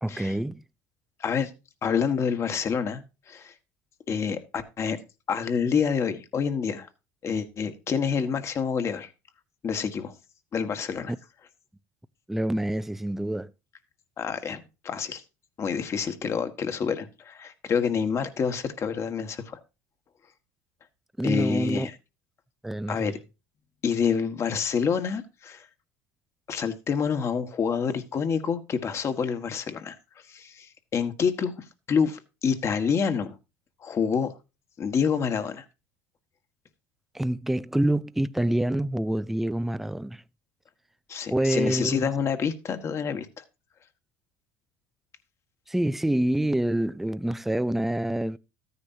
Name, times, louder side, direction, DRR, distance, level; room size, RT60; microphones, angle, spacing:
voice 1, 0.0-0.6 11.1-11.2 12.3-13.5 21.2-21.9 22.6-23.1 37.1-40.2 41.3-42.1 45.7-48.4, right 1 dB, 5° right, 0.5 m, -26 dB
voice 2, 1.2-1.5 1.8-3.5 4.1-5.0 5.3-6.9 7.2-9.1 9.6-10.1 10.5-11.1 14.2-15.2 15.6-19.6 21.2-21.9 22.9-23.2 23.8-25.7 26.5-30.0 30.3-31.5 31.9-33.3 33.8-34.3 34.8-35.6 41.1-43.4, left 6 dB, 40° left, 1.5 m, -27 dB
13.5 x 9.7 x 2.7 m
supercardioid pair, 105°, 8 cm